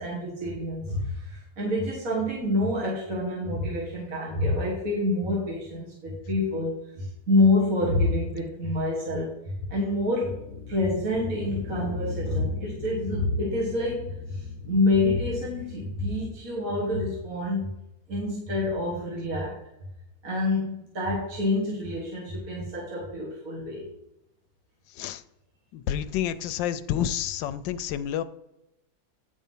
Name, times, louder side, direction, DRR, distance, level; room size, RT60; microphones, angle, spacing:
voice 1, 0.0-9.3 9.7-10.4 10.7-17.8 18.1-19.6 20.2-23.9, left 2 dB, 50° right, -5 dB, 2.2 m, -27 dB
sound 1, 10.2-16.3, left 5 dB, 50° left, 0.9 m, -38 dB
voice 2, 25.7-28.2, left 10 dB, 80° left, 12 dB, 1.3 m, -29 dB
9.5 x 4.3 x 5.4 m, 0.88 s
omnidirectional pair, 2.0 m